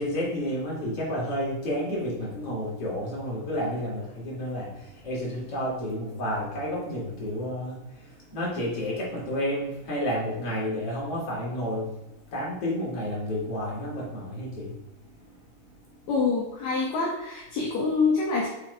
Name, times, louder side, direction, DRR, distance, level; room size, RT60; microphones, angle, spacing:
voice 1, 0.0-15.4, equal, 40° left, -5 dB, 4.0 m, -31 dB
voice 2, 16.1-18.5, left 4 dB, 60° left, -3 dB, 2.6 m, -26 dB
7.4 x 7.0 x 4.8 m, 0.99 s
omnidirectional pair, 4.0 m